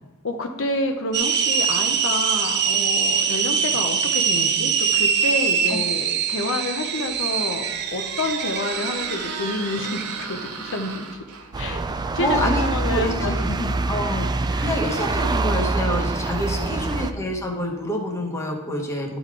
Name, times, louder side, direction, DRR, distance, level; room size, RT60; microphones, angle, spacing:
voice 1, 0.2-11.2 11.6-11.8 12.1-13.6 14.5-14.7 16.6-16.9, left 2 dB, 60° left, 4 dB, 0.7 m, -29 dB
sound 1, 1.1-10.2, right 6 dB, 50° right, 0.7 m, -23 dB
Squeak, 6.8-15.6, right 5 dB, 90° right, 1.0 m, -38 dB
sound 2, 11.5-17.1, right 3 dB, 20° right, 0.3 m, -25 dB
voice 2, 11.9-19.2, left 1 dB, 15° left, 1 dB, 1.1 m, -28 dB
11.5 x 3.9 x 4.7 m, 1.2 s
head